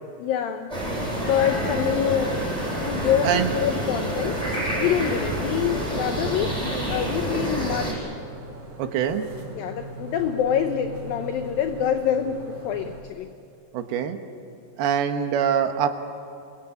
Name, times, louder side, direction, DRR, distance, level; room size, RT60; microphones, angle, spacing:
voice 1, 0.2-0.7 1.3-4.4 4.8-8.1 9.6-13.3, left 9 dB, 75° left, 7 dB, 2.2 m, -26 dB
sound 1, 0.7-7.9, right 1 dB, 5° right, 7.5 m, -28 dB
sound 2, 3.8-13.0, right 2 dB, 35° right, 4.7 m, -40 dB
voice 2, 8.8-9.3 13.7-14.2 14.8-15.9, right 8 dB, 70° right, 7 dB, 3.0 m, -24 dB
27.5 x 22.5 x 9.1 m, 2.5 s
omnidirectional pair, 5.1 m